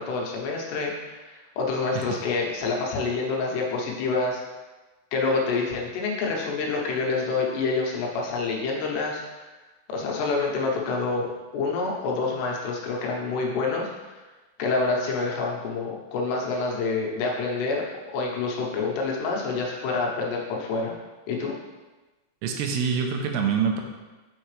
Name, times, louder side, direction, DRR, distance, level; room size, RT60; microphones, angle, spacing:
voice 1, 0.0-4.4 5.1-9.5 9.9-14.2 14.6-17.8 18.1-20.9 21.3-21.5, left 3 dB, 80° left, -1 dB, 3.2 m, -27 dB
voice 2, 22.4-23.8, right 6 dB, 85° right, 3 dB, 2.7 m, -25 dB
7.0 x 5.8 x 3.2 m, 1.2 s
omnidirectional pair, 4.8 m